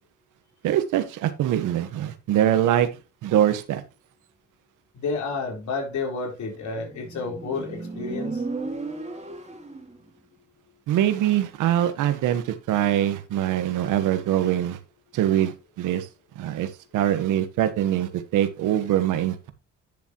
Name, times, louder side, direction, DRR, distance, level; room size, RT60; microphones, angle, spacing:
voice 1, 0.6-2.9 3.2-3.8 10.9-14.8 15.1-16.1 16.4-19.5, right 11 dB, 90° right, 1.4 m, -23 dB
voice 2, 4.9-8.4, left 4 dB, 70° left, 4.0 m, -30 dB
Motorcycle, 6.5-10.0, right 3 dB, 20° right, 2.9 m, -34 dB
10.5 x 7.2 x 3.0 m
cardioid pair, 90°, 30 cm